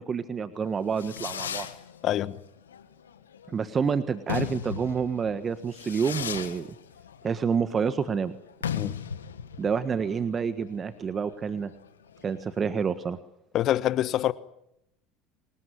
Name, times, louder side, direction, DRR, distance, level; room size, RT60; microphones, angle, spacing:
voice 1, 0.0-1.7 3.5-6.7 7.2-8.3 9.6-11.7 12.2-13.2, right 6 dB, 30° right, 1.4 m, -28 dB
Fireworks, 0.6-12.8, left 8 dB, 90° left, 1.6 m, -37 dB
voice 2, 2.0-2.4 8.7-8.9 13.5-14.3, left 12 dB, 50° left, 1.3 m, -25 dB
24.0 x 20.5 x 9.9 m
hypercardioid pair, 75°, 0 cm